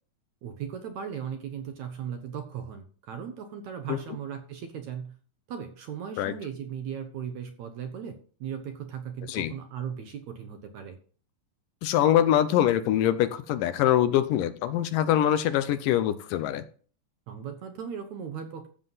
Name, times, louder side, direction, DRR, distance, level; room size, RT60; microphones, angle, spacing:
voice 1, 0.4-5.2 5.5-11.0 17.3-18.7, right 8 dB, 70° right, 7 dB, 1.9 m, -37 dB
voice 2, 11.8-16.6, left 11 dB, 80° left, 12 dB, 2.1 m, -24 dB
13.5 x 7.5 x 4.0 m, 0.42 s
omnidirectional pair, 4.2 m